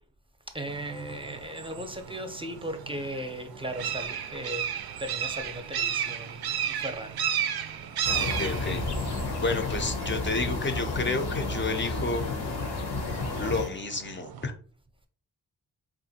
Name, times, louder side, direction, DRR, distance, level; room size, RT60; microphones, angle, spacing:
voice 1, 0.5-4.7 5.0-7.2, right 1 dB, 15° right, 0.6 m, -37 dB
sound 1, 0.7-14.5, right 9 dB, 75° right, 0.5 m, -35 dB
sound 2, 8.0-13.7, left 3 dB, 85° left, 0.9 m, -31 dB
voice 2, 8.1-8.8 9.4-12.2 13.4-14.5, left 3 dB, 30° left, 0.5 m, -30 dB
3.5 x 2.5 x 2.8 m
cardioid pair, 60°, 38 cm